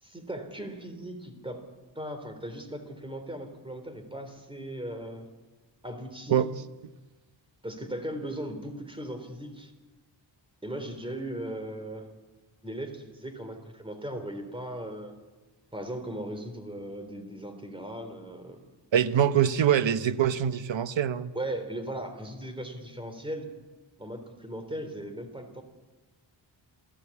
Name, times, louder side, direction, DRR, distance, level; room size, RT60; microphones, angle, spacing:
voice 1, 0.0-1.7 1.9-5.3 5.8-6.4 7.6-9.7 10.6-12.1 12.6-15.1 15.7-18.6 21.3-23.5 24.0-25.6, right 1 dB, 10° right, 6 dB, 3.4 m, -38 dB
voice 2, 18.9-21.3, right 9 dB, 75° right, 12 dB, 1.0 m, -24 dB
28.0 x 16.0 x 8.4 m, 1.2 s
wide cardioid pair, 155°, 45 cm